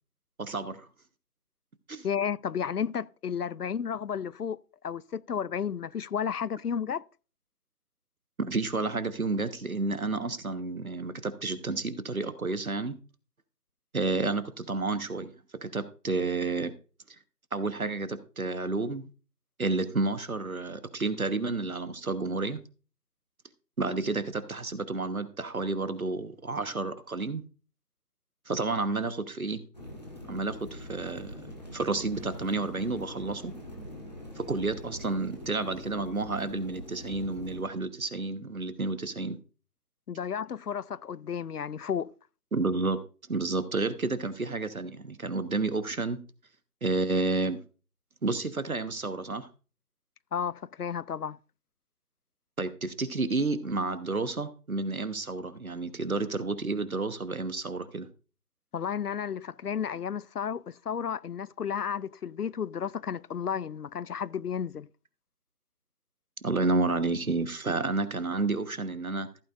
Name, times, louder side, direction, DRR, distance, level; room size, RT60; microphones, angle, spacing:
voice 1, 0.4-0.9 1.9-2.1 8.4-12.9 13.9-15.3 15.6-16.7 17.1-17.2 17.5-19.1 19.6-22.6 23.8-27.4 28.5-29.7 30.3-31.3 31.7-33.5 34.3-39.4 42.5-43.0 43.3-46.2 46.8-47.6 48.2-49.5 52.6-58.1 66.4-69.3, right 3 dB, 60° right, 1.2 m, -30 dB
voice 2, 2.0-4.6 4.8-7.0 40.1-42.1 50.3-51.4 58.7-64.9, left 7 dB, 70° left, 0.5 m, -32 dB
sound 1, 29.7-37.6, left 1 dB, 25° left, 1.8 m, -43 dB
14.5 x 8.8 x 2.5 m
figure-of-eight pair, 175°, 47 cm